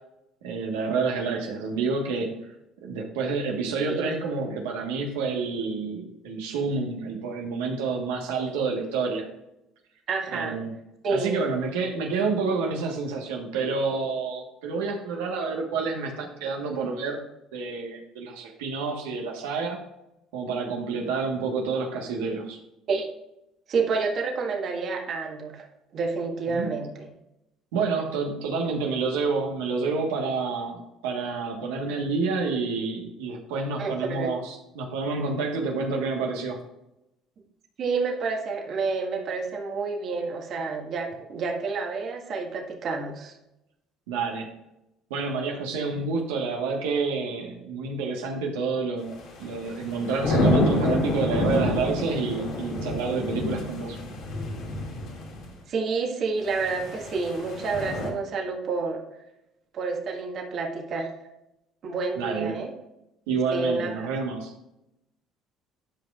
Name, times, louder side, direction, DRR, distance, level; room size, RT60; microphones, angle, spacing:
voice 1, 0.4-2.4 2.8-9.3 10.3-10.8 11.1-17.2 17.5-19.8 20.3-22.6 26.5-26.7 27.7-36.6 44.1-44.5 45.1-54.0 62.1-62.5 63.3-64.5, right 4 dB, 85° right, 1 dB, 1.4 m, -29 dB
voice 2, 10.1-10.6 11.0-11.4 22.9-23.1 23.7-25.6 25.9-27.1 33.8-34.3 37.8-43.3 55.7-59.0 59.7-61.1 61.8-62.7 63.5-64.1, right 4 dB, 55° right, 1 dB, 1.7 m, -29 dB
sound 1, 49.2-55.5 56.5-58.1, left 2 dB, 70° left, 2.3 m, -28 dB
12.0 x 5.2 x 2.5 m, 0.88 s
supercardioid pair, 75°, 0 cm